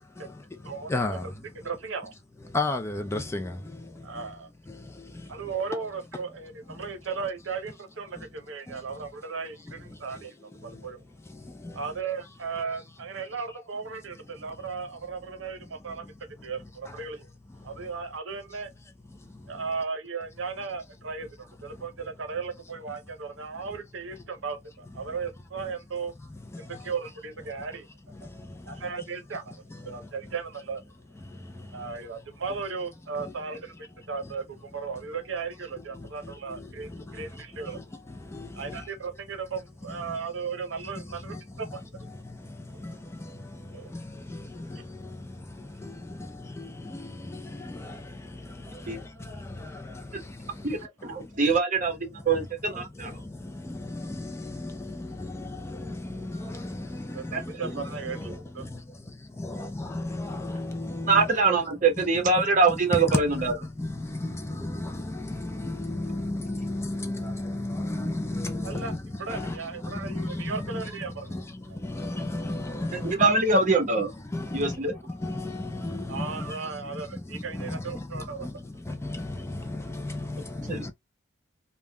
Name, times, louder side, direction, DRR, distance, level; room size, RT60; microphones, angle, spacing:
voice 1, 0.1-1.7 2.5-4.3 4.7-5.5 6.7-6.9 8.1-8.3 8.7-9.1 9.6-10.9 11.2-11.8 14.1-14.7 15.7-16.2 16.6-17.0 17.5-17.9 19.1-19.7 21.7-21.9 24.1-24.2 25.0-25.2 25.6-25.7 26.3-26.9 28.1-29.1 29.7-30.3 31.2-32.0 33.2-33.3 34.2-34.3 35.9-38.9 39.9-40.2 40.8-51.6 52.1-61.3 62.0-73.3 74.1-80.9, left 2 dB, 15° left, 0.3 m, -36 dB
voice 2, 0.6-1.2 1.6-2.1 4.0-4.5 5.3-10.3 10.6-11.0 11.7-16.1 16.4-17.3 17.6-18.7 19.5-26.1 26.6-27.9 28.7-30.8 31.7-37.8 38.5-42.1 42.7-43.0 43.7-44.0 44.7-44.8 57.1-58.6 68.6-68.9 69.2-71.5 76.1-78.5, right 5 dB, 75° right, 0.7 m, -36 dB
voice 3, 50.6-53.1 57.3-57.4 61.1-63.5 73.0-74.1 74.5-74.9 80.7-80.9, right 3 dB, 40° right, 0.9 m, -23 dB
3.4 x 2.1 x 2.2 m
head